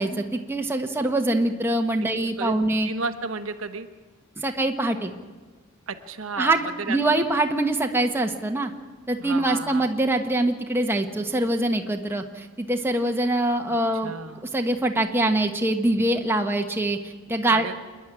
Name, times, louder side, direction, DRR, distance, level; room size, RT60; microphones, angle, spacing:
voice 1, 0.0-2.9 4.4-5.1 6.4-6.6 6.9-8.7 9.1-14.1 14.4-17.7, right 1 dB, 10° right, 3 dB, 1.2 m, -24 dB
voice 2, 2.8-3.9 5.9-6.5 6.9-7.0 9.2-9.9 14.0-14.4 17.5-17.7, right 4 dB, 65° right, 8 dB, 1.1 m, -32 dB
27.5 x 10.5 x 9.8 m, 1.3 s
head